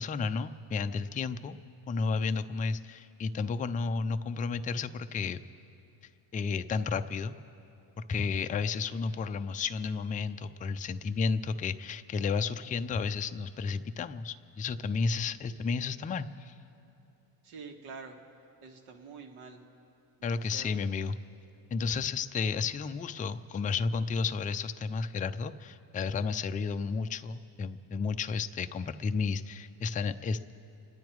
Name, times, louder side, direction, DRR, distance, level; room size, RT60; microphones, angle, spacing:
voice 1, 0.0-1.6 1.9-5.4 6.3-7.3 8.1-16.5 20.2-21.2 21.7-30.5, left 5 dB, 20° left, 8 dB, 0.3 m, -32 dB
voice 2, 17.4-18.2 18.6-19.6 20.2-20.8, right 4 dB, 75° right, 3 dB, 2.0 m, -47 dB
29.0 x 10.5 x 4.6 m, 2.8 s
cardioid pair, 115°, 49 cm